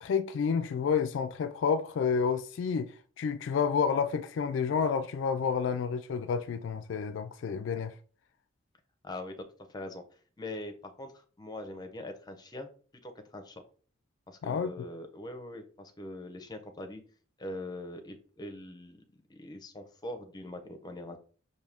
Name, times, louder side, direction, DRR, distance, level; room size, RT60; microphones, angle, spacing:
voice 1, 0.0-7.9 14.4-14.8, left 6 dB, 70° left, 0.3 m, -30 dB
voice 2, 9.0-9.4 9.7-10.0 10.4-12.7 13.0-13.6 14.3-17.0 17.4-21.2, left 1 dB, 20° left, 0.6 m, -42 dB
5.3 x 2.7 x 3.4 m
head